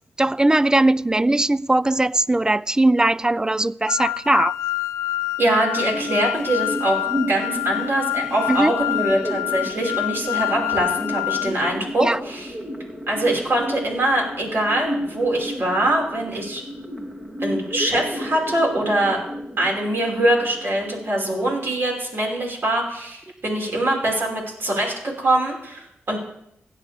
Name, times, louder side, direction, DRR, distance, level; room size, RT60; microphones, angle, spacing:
voice 1, 0.2-4.5 8.5-8.7 12.0-12.2, right 2 dB, 15° right, 0.3 m, -19 dB
sound 1, 3.9-11.7, left 16 dB, 90° left, 0.4 m, -27 dB
voice 2, 5.4-7.0 7.3-12.6 13.1-16.6 17.4-19.2 19.6-26.2, right 1 dB, 55° right, 5.5 m, -23 dB
sound 2, 5.8-21.8, equal, 30° right, 2.6 m, -33 dB
16.5 x 10.5 x 3.6 m
cardioid pair, 50°, 5 cm